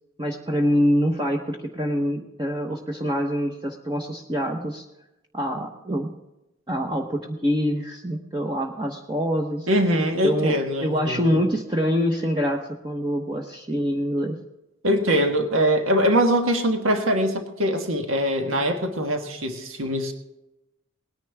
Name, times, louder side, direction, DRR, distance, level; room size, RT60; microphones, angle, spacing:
voice 1, 0.2-4.9 5.3-6.1 6.7-9.7 10.2-10.5 10.8-14.4, equal, 20° right, 1 dB, 0.9 m, -25 dB
voice 2, 9.7-11.4 14.8-20.1, equal, 85° right, 5 dB, 1.5 m, -22 dB
19.0 x 10.0 x 3.5 m, 0.95 s
head